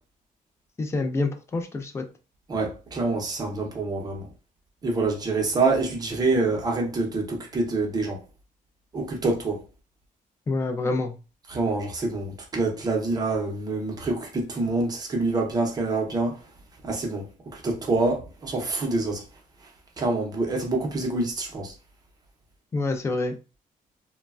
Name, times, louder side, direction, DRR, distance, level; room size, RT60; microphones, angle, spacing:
voice 1, 0.8-2.0 10.5-11.2 22.7-23.3, left 3 dB, 20° left, 0.4 m, -27 dB
voice 2, 2.5-4.3 4.8-8.2 8.9-9.6 11.5-16.4 16.8-17.3 17.5-19.2 20.0-21.7, right 3 dB, 25° right, 0.6 m, -26 dB
3.1 x 2.1 x 2.3 m
cardioid pair, 160°, 15 cm